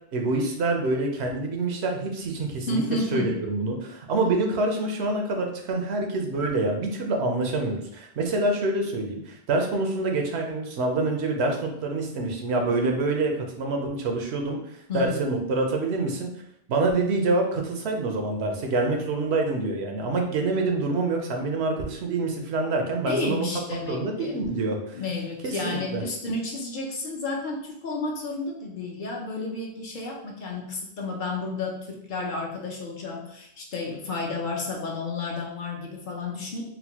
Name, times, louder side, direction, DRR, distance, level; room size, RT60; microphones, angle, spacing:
voice 1, 0.1-2.8 3.1-14.6 14.9-16.3 16.7-23.5 23.9-25.0 25.4-26.0, right 2 dB, 90° right, 2 dB, 0.9 m, -26 dB
voice 2, 2.7-3.4 4.2-4.3 14.9-15.3 23.1-24.4 24.9-36.7, left 3 dB, 55° left, 0 dB, 0.7 m, -31 dB
4.0 x 2.2 x 2.8 m, 0.74 s
omnidirectional pair, 1.1 m